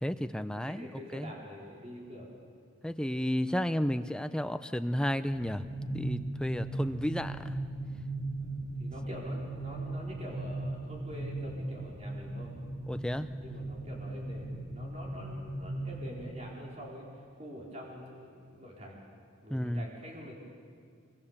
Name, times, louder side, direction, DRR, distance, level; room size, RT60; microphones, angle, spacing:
voice 1, 0.0-1.3 2.8-7.6 12.9-13.3 19.5-19.9, equal, 5° left, 10 dB, 0.6 m, -32 dB
voice 2, 0.7-2.3 6.5-6.8 8.4-12.5 13.4-17.0 17.3-19.0 19.4-20.3, equal, 30° right, -2 dB, 4.4 m, -46 dB
sound 1, 5.3-16.3, right 2 dB, 75° right, 3.3 m, -38 dB
25.0 x 24.0 x 7.3 m, 2.1 s
head